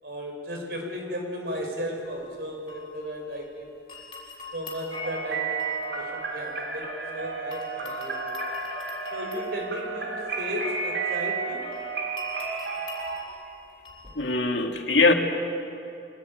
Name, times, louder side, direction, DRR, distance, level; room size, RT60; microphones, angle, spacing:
voice 1, 0.0-3.7 4.5-8.2 9.1-11.6, equal, 65° right, 2 dB, 5.2 m, -35 dB
sound 1, 2.1-3.6 3.9-7.1 7.5-14.3, left 5 dB, 25° left, 6.0 m, -44 dB
sound 2, 4.9-13.2, right 4 dB, 85° right, 2.9 m, -32 dB
voice 2, 14.2-15.1, left 3 dB, 85° left, 3 dB, 2.3 m, -21 dB
24.5 x 19.0 x 9.3 m, 2.7 s
head